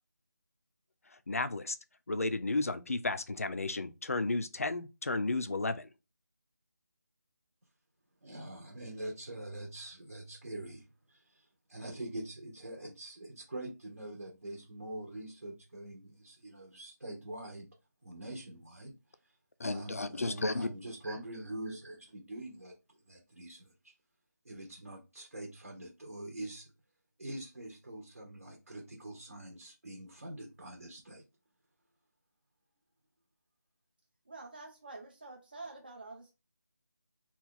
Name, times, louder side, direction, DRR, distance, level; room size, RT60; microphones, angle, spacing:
voice 1, 1.1-1.8 2.1-5.9 19.6-20.7, left 2 dB, 50° left, 0.4 m, -33 dB
voice 2, 8.2-17.7 18.0-18.9 19.6-23.9 24.4-26.7 27.2-31.2, right 1 dB, 55° right, 0.8 m, -44 dB
voice 3, 34.3-36.3, right 3 dB, 30° right, 0.4 m, -47 dB
2.9 x 2.3 x 3.6 m
figure-of-eight pair, 180°, 10 cm